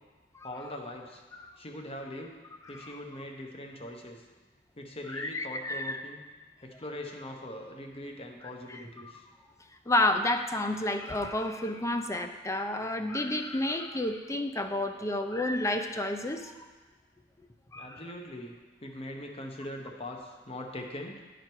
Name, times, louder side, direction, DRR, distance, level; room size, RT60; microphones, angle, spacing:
voice 1, 0.4-1.2 1.6-2.3 2.7-4.2 4.8-6.2 6.6-9.2 17.8-18.5 18.8-21.2, left 1 dB, 35° left, 2 dB, 0.9 m, -41 dB
voice 2, 2.6-3.0 5.1-6.0 8.7-8.8 9.9-16.5 17.7-18.0, left 1 dB, 15° left, 7 dB, 0.5 m, -30 dB
10.5 x 5.0 x 4.5 m, 1.3 s
head